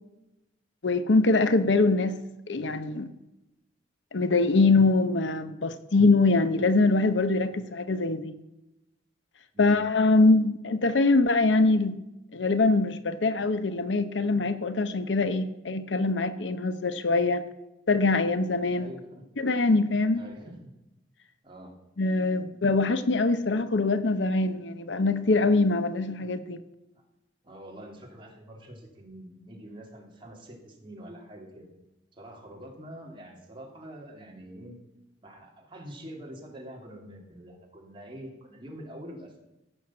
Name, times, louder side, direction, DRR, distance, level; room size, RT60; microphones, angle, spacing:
voice 1, 0.8-2.2 2.5-3.1 4.1-8.3 9.6-12.0 12.3-17.4 17.9-18.9 19.4-20.2 22.0-26.6, left 3 dB, 80° left, 0.8 m, -23 dB
voice 2, 18.8-19.3 20.1-20.7 21.4-21.7 27.4-31.7 32.1-34.8 35.2-39.3, right 1 dB, 30° right, 2.8 m, -45 dB
15.5 x 6.4 x 7.4 m
head